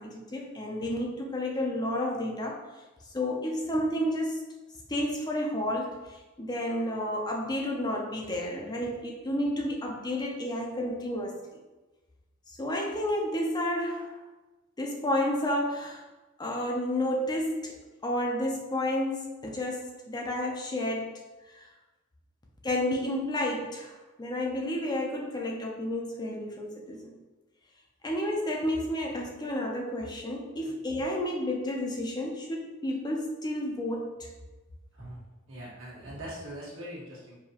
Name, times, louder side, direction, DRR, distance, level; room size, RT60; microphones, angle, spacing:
voice 1, 0.0-2.6 3.1-4.4 4.9-11.4 12.5-14.2 14.8-16.0 16.4-17.8 18.0-21.2 21.4-21.7 22.6-27.1 28.0-34.3, left 1 dB, 20° left, 0 dB, 0.5 m, -31 dB
voice 2, 35.5-37.4, right 1 dB, 65° right, -6 dB, 1.4 m, -42 dB
4.8 x 2.8 x 2.8 m, 1.1 s
head